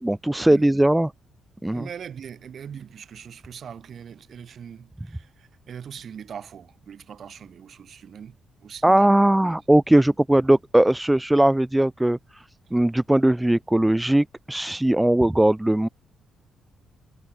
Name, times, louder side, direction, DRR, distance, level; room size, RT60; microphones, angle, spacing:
voice 1, 0.0-1.1 1.6-1.8 8.8-12.4 12.7-15.9, right 1 dB, 5° right, 0.5 m, -19 dB
voice 2, 1.7-9.6 9.9-10.0, right 8 dB, 45° right, 7.2 m, -41 dB
cardioid pair, 170°, 0 cm